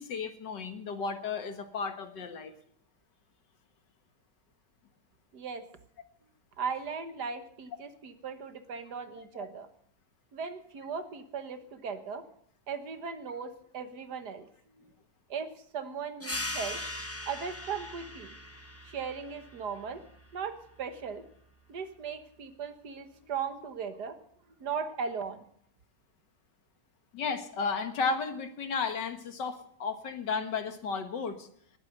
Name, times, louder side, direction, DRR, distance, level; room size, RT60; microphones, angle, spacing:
voice 1, 0.0-2.5 9.2-9.3 27.1-31.5, left 5 dB, 80° left, 8 dB, 2.1 m, -33 dB
voice 2, 5.3-5.6 6.6-9.7 10.3-12.2 12.7-14.5 14.8-14.9 15.3-16.8 17.3-18.4 18.9-20.0 20.3-21.3 21.7-24.2 24.6-25.5, right 6 dB, 70° right, 9 dB, 1.8 m, -38 dB
sound 1, 16.2-21.4, left 1 dB, 10° left, 0.8 m, -41 dB
20.0 x 8.9 x 6.7 m, 0.65 s
omnidirectional pair, 1.9 m